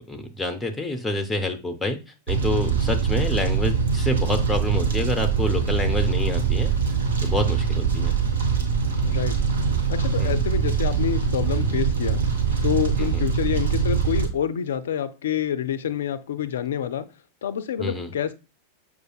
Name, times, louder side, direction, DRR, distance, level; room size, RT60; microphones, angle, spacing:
voice 1, 0.1-2.0 2.3-6.7 7.2-8.1 10.2-10.4 13.0-13.2 17.8-18.1, left 1 dB, 5° left, 6 dB, 0.5 m, -27 dB
Fire, 2.3-14.3, right 6 dB, 70° right, 0.7 m, -23 dB
voice 2, 9.0-9.4 9.9-12.2 12.6-17.1 17.4-18.3, left 9 dB, 60° left, 12 dB, 0.3 m, -27 dB
6.2 x 2.4 x 2.3 m, 0.30 s
figure-of-eight pair, 90°, 0 cm